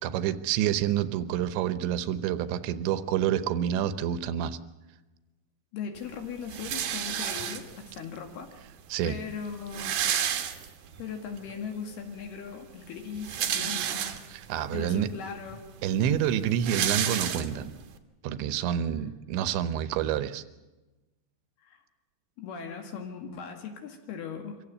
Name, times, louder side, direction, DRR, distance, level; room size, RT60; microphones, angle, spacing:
voice 1, 0.0-4.6 8.9-9.2 14.3-15.1 15.8-17.7 18.2-20.4, right 10 dB, 80° right, 13 dB, 3.1 m, -28 dB
voice 2, 5.7-8.5 9.0-10.0 11.0-14.2 14.7-15.7 21.6-21.8 22.4-24.6, left 6 dB, 65° left, 5 dB, 3.7 m, -39 dB
sound 1, 6.5-7.9 8.8-8.9 9.1-9.2 9.4-11.0 11.5-11.6 13.0-14.5 15.1-15.2 15.5-17.8, right 9 dB, 65° right, 2.1 m, -31 dB
25.0 x 15.5 x 8.4 m, 1.1 s
omnidirectional pair, 5.2 m